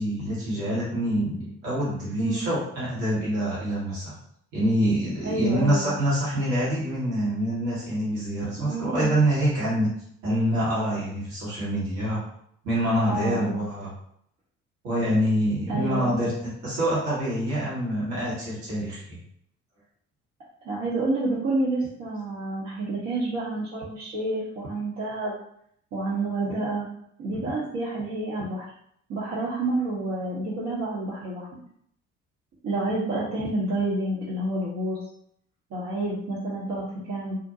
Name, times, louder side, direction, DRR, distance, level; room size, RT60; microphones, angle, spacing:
voice 1, 0.0-4.1 4.5-9.9 10.2-12.2 12.6-13.9 14.8-19.2, equal, 65° right, -7 dB, 1.2 m, -26 dB
voice 2, 2.2-2.5 5.2-6.0 8.7-9.2 13.1-13.6 15.7-16.1 20.6-25.3 25.9-26.9 27.2-28.7 29.1-31.5 32.6-35.0 35.7-37.4, right 2 dB, 45° right, -9 dB, 0.9 m, -29 dB
2.6 x 2.2 x 2.6 m, 0.69 s
figure-of-eight pair, 45°, 37 cm